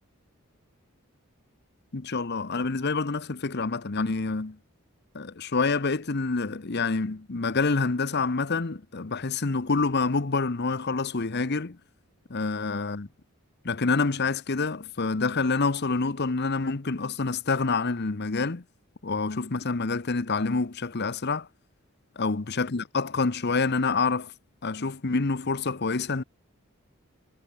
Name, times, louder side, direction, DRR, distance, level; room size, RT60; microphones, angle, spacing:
voice 1, 1.9-4.6 5.1-11.8 12.3-13.1 13.6-18.6 19.0-21.5 22.2-24.3 24.6-26.2, left 4 dB, 50° left, 0.9 m, -27 dB
head